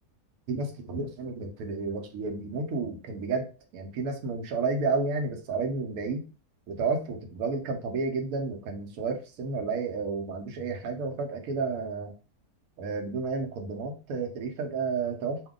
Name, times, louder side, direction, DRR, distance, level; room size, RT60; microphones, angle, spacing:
voice 1, 0.5-3.5 3.7-6.2 6.7-12.1 12.8-15.4, right 4 dB, 75° right, 4 dB, 1.1 m, -31 dB
2.7 x 2.2 x 3.6 m, 0.34 s
omnidirectional pair, 1.6 m